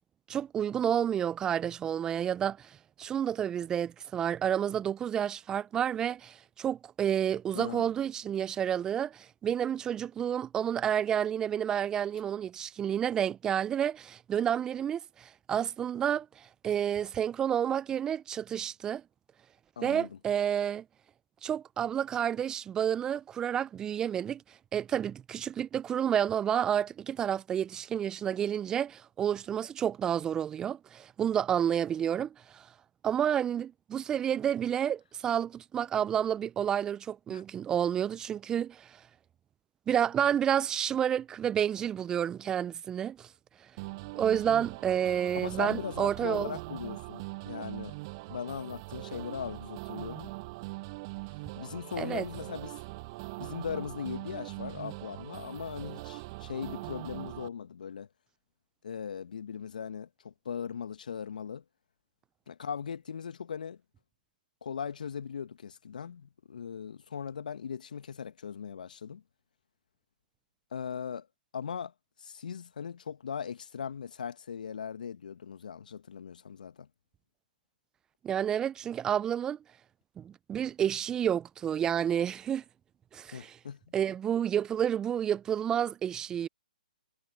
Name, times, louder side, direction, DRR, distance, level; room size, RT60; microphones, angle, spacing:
voice 1, 0.3-2.7 3.0-19.0 19.8-20.8 21.4-24.4 24.7-32.7 33.0-38.9 39.9-43.3 44.1-46.5 52.0-52.3 78.2-79.6 80.2-82.6 83.1-83.6 83.9-86.5, right 9 dB, 15° right, 0.7 m, -30 dB
voice 2, 7.5-7.9 19.7-20.2 37.3-37.4 45.3-47.9 48.3-50.3 51.5-52.8 53.4-58.1 58.8-61.6 62.5-63.8 64.6-69.2 70.7-71.3 71.5-71.9 72.2-76.9 83.3-83.8, left 7 dB, 65° left, 1.7 m, -39 dB
sound 1, 43.8-57.5, right 24 dB, 35° right, 7.2 m, -42 dB
figure-of-eight pair, 135°, 5 cm